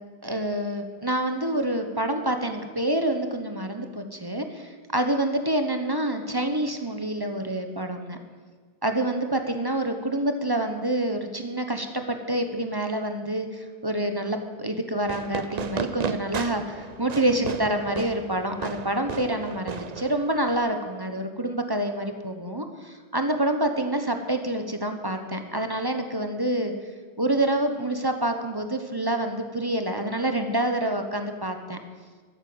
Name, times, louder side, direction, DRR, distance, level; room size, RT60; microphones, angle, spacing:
voice 1, 0.2-8.2 8.8-26.7 27.2-31.8, right 1 dB, 20° right, 6 dB, 1.1 m, -27 dB
Fireworks, 15.0-20.6, right 6 dB, 45° right, 0.6 m, -34 dB
13.5 x 10.0 x 7.9 m, 1.5 s
omnidirectional pair, 1.2 m